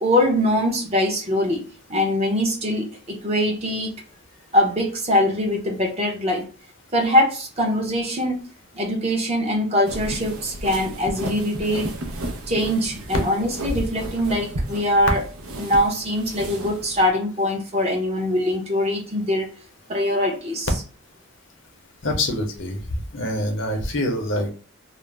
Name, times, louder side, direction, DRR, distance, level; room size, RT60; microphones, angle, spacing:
voice 1, 0.0-1.6 1.9-3.9 4.5-6.5 6.9-8.4 8.7-11.9 12.5-15.2 15.6-19.5 19.9-20.7, left 1 dB, 30° right, 0 dB, 0.6 m, -22 dB
sound 1, 9.9-17.1, right 2 dB, 75° right, 0.6 m, -33 dB
voice 2, 22.0-22.8 23.1-24.5, left 1 dB, 55° left, 4 dB, 0.6 m, -25 dB
2.4 x 2.0 x 3.1 m, 0.39 s
head